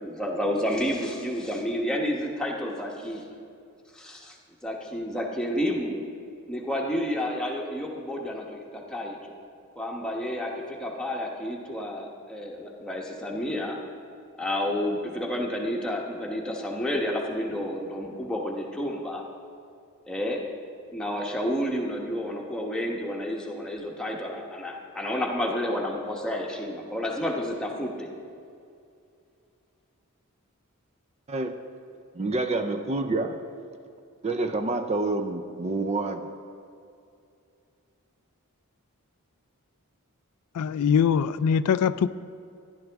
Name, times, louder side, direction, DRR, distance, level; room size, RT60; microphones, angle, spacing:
voice 1, 0.0-3.2 3.9-4.4 4.6-6.0 6.5-9.4 9.7-13.8 14.4-19.2 20.1-20.4 20.9-28.1, equal, 5° left, -2 dB, 1.1 m, -30 dB
voice 2, 31.3-31.6 32.1-33.4 34.2-36.3, right 2 dB, 30° right, 7 dB, 0.4 m, -28 dB
voice 3, 40.6-42.1, left 7 dB, 85° left, 14 dB, 0.3 m, -22 dB
14.5 x 10.5 x 3.5 m, 2.5 s
head